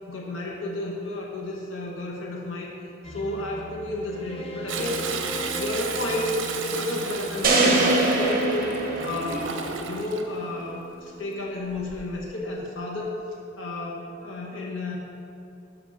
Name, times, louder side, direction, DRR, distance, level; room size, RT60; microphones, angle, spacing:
voice 1, 0.1-2.7 3.1-5.1 5.4-6.4 6.6-13.1 13.6-15.0, left 2 dB, 85° left, -2 dB, 1.0 m, -32 dB
sound 1, 3.0-10.5, left 1 dB, 30° left, 0.6 m, -39 dB
Toilet flush, 4.7-10.2 11.7-12.2 12.6-12.7, right 5 dB, 75° right, 0.6 m, -34 dB
sound 2, 7.4-9.7, right 2 dB, 50° right, 0.9 m, -22 dB
6.1 x 5.0 x 5.7 m, 2.6 s
head